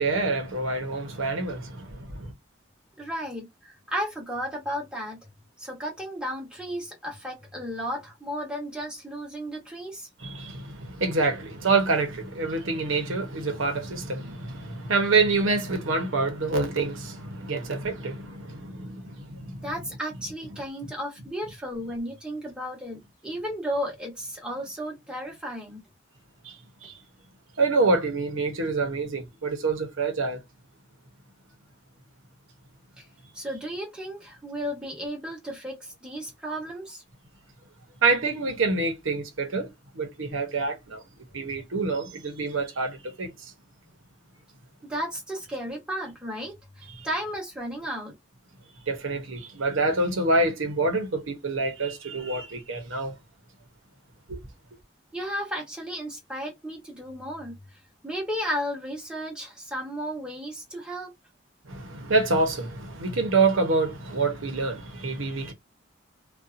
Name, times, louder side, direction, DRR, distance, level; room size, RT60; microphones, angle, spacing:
voice 1, 0.0-2.3 10.2-19.6 26.4-26.6 26.8-26.9 27.6-30.4 38.0-39.7 39.9-41.0 41.3-43.3 48.9-53.1 54.3-54.4 61.7-65.5, right 3 dB, 85° right, 0.8 m, -26 dB
voice 2, 3.0-5.2 5.6-10.1 19.6-25.8 33.0-33.1 33.3-37.0 44.8-48.2 55.1-61.1, equal, 5° right, 1.0 m, -34 dB
2.6 x 2.3 x 2.4 m
head